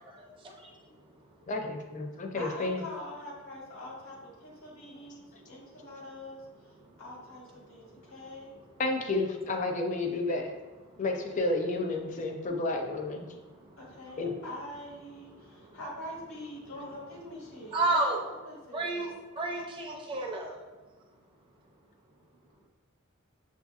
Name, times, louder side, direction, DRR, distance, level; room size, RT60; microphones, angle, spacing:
voice 1, 1.5-2.8 4.9-5.0 8.8-10.5 11.0-13.3 14.2-14.3, left 2 dB, 35° left, 3 dB, 0.5 m, -31 dB
voice 2, 2.3-6.4 7.0-8.5 13.8-19.1, left 1 dB, 90° left, -3 dB, 1.2 m, -44 dB
voice 3, 17.7-18.2 18.7-19.1 19.4-20.5, right 2 dB, 25° right, -1 dB, 0.5 m, -30 dB
6.4 x 2.7 x 2.4 m, 1.2 s
head